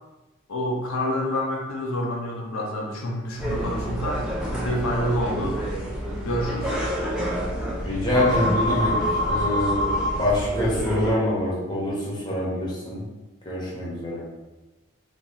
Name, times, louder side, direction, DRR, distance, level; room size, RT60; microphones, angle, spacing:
voice 1, 0.5-4.3 4.5-5.6 6.2-6.8, equal, 80° left, -1 dB, 0.6 m, -28 dB
sound 1, 3.4-11.1, equal, 5° right, 0.5 m, -27 dB
voice 2, 7.8-9.9 10.2-13.0 13.4-14.2, left 1 dB, 20° left, -6 dB, 1.0 m, -25 dB
2.9 x 2.8 x 3.7 m, 1.1 s
head